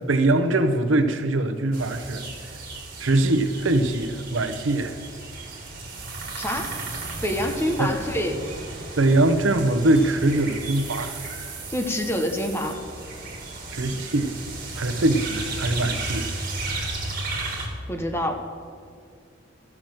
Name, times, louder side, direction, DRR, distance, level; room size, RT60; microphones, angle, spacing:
voice 1, 0.1-2.2 3.0-5.0 7.8-7.9 9.0-11.1 13.7-14.3 14.8-16.3, right 2 dB, 85° right, 8 dB, 0.8 m, -22 dB
sound 1, 1.7-17.7, right 3 dB, 50° right, 2.0 m, -34 dB
voice 2, 6.4-6.7 7.2-8.4 11.7-12.8 17.9-18.3, left 1 dB, 15° left, 4 dB, 1.0 m, -26 dB
13.5 x 6.0 x 7.6 m, 2.2 s
head